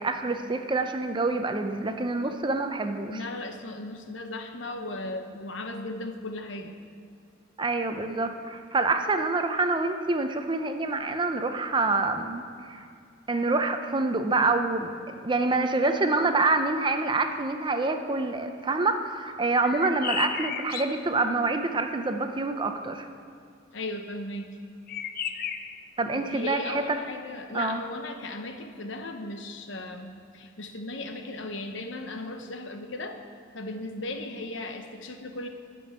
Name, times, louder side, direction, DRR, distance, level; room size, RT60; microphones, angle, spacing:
voice 1, 0.0-3.2 7.6-12.8 13.3-23.1 26.0-27.0 27.5-27.8, right 3 dB, 25° right, 7 dB, 0.6 m, -26 dB
voice 2, 3.1-6.8 23.7-24.6 26.1-33.2 33.5-35.5, left 2 dB, 75° left, 5 dB, 1.0 m, -36 dB
sound 1, 19.6-21.1 24.9-25.8, left 8 dB, 50° left, 0.5 m, -33 dB
12.5 x 5.4 x 8.7 m, 2.3 s
head